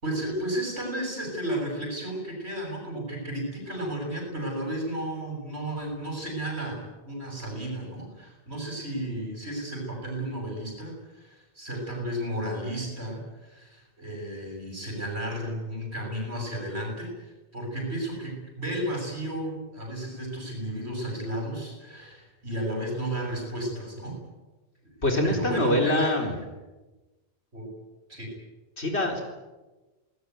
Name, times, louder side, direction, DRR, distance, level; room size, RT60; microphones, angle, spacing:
voice 1, 0.0-24.2 25.0-26.4 27.5-27.7 28.1-28.3, right 1 dB, 80° right, 1 dB, 7.0 m, -33 dB
voice 2, 25.0-26.3 28.8-29.2, left 1 dB, 85° left, 3 dB, 4.5 m, -24 dB
26.0 x 19.0 x 9.3 m, 1.2 s
omnidirectional pair, 1.1 m